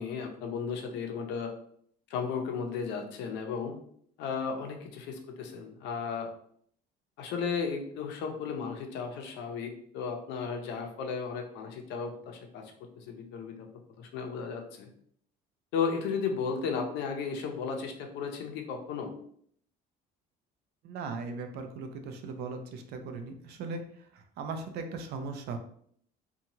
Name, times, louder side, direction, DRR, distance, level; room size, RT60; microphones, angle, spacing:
voice 1, 0.0-1.5 2.1-3.8 4.2-6.3 7.2-13.7 14.0-14.9 15.7-19.1, left 5 dB, 70° left, 4 dB, 0.6 m, -34 dB
voice 2, 20.8-25.6, right 4 dB, 65° right, 6 dB, 0.5 m, -38 dB
2.9 x 2.3 x 2.7 m, 0.64 s
cardioid pair, 145°, 18 cm